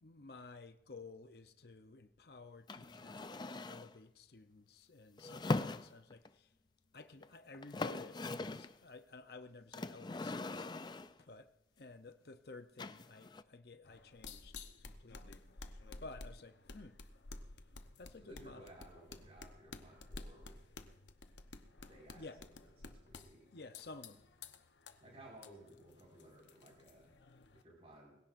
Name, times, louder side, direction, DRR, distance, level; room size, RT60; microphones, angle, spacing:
voice 1, 0.0-6.5 6.9-10.7 11.2-11.5 11.8-15.4 16.0-17.0 18.0-18.7 22.2-22.4 23.5-24.2, left 3 dB, 60° left, 0.7 m, -54 dB
sound 1, 2.7-3.9 5.2-6.3 7.2-7.3 7.5-8.8 9.7-11.2 12.8-13.4, left 2 dB, 25° left, 0.4 m, -40 dB
sound 2, 13.8-27.6, left 3 dB, 85° left, 1.0 m, -53 dB
voice 2, 18.2-20.6 21.9-22.3 22.8-23.5 25.0-27.1 27.5-28.2, right 1 dB, 35° right, 5.4 m, -58 dB
22.0 x 16.5 x 2.6 m
head